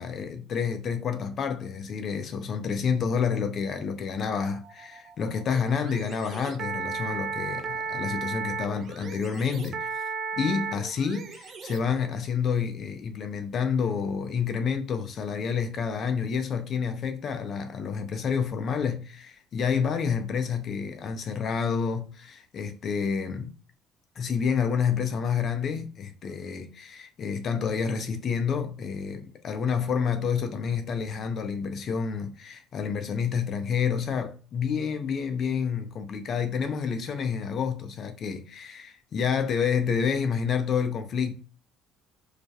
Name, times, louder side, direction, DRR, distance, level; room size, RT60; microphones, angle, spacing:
voice 1, 0.0-23.5 24.2-41.3, left 6 dB, 45° left, 0.4 m, -29 dB
sound 1, 4.4-12.1, right 5 dB, 45° right, 0.4 m, -35 dB
2.3 x 2.1 x 2.7 m
cardioid pair, 120°, 0 cm